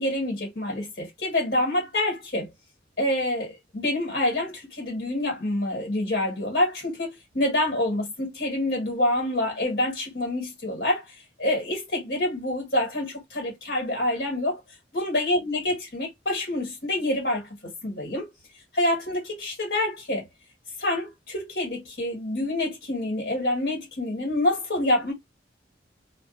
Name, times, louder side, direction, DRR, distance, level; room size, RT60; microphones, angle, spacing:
voice 1, 0.0-2.5 3.0-11.0 11.4-14.6 14.9-18.3 18.7-20.3 20.8-25.1, left 1 dB, 60° left, 1.6 m, -27 dB
2.4 x 2.4 x 2.5 m
head